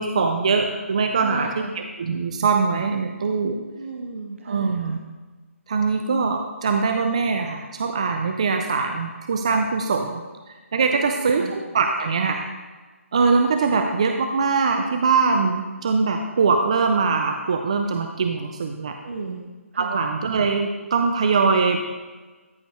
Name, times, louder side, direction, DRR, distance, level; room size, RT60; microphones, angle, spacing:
voice 1, 0.0-3.6 4.5-5.0 5.7-10.2 10.7-12.5 13.1-19.0 19.8-21.8, right 4 dB, 25° right, 5 dB, 0.3 m, -22 dB
voice 2, 1.2-1.8 3.7-5.0 10.9-11.0 11.4-11.5 19.0-19.4 19.7-20.0, right 3 dB, 60° right, 2 dB, 0.9 m, -34 dB
13.0 x 5.1 x 3.1 m, 1.3 s
hypercardioid pair, 175°, 8 cm